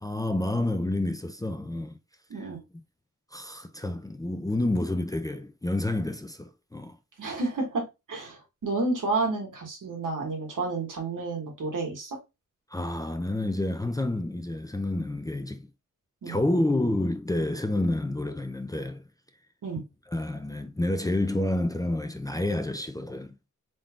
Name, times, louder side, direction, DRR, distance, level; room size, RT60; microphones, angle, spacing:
voice 1, 0.0-2.0 2.4-2.5 3.3-7.0 12.7-15.6 16.3-19.0 19.8-19.9 20.1-23.3, left 1 dB, 10° left, 0.4 m, -29 dB
voice 2, 2.3-2.6 7.2-7.8 8.1-12.2 16.2-16.4 19.6-19.8, right 3 dB, 85° right, 1.7 m, -30 dB
3.7 x 3.5 x 2.3 m
wide cardioid pair, 80°, 31 cm